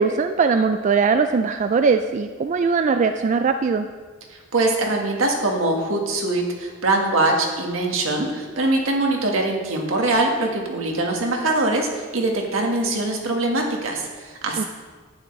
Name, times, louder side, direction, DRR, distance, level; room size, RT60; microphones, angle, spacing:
voice 1, 0.0-3.9 14.6-14.7, right 5 dB, 35° right, 8 dB, 0.3 m, -20 dB
voice 2, 4.3-14.6, right 2 dB, 80° right, 1 dB, 1.6 m, -23 dB
11.0 x 9.3 x 3.2 m, 1.4 s
head